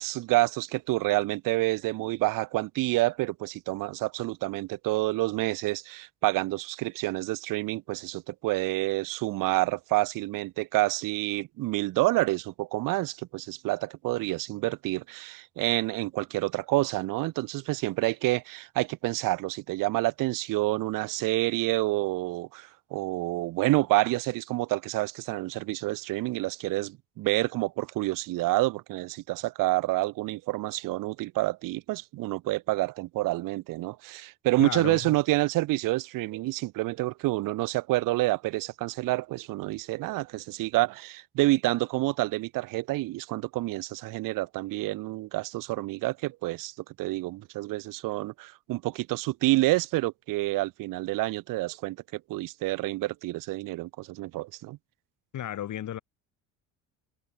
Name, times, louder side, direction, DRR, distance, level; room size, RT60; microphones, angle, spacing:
voice 1, 0.0-54.8, right 19 dB, 55° right, 0.6 m, -28 dB
voice 2, 34.6-35.2 55.3-56.0, left 11 dB, 45° left, 1.2 m, -33 dB
hypercardioid pair, 65°, 40 cm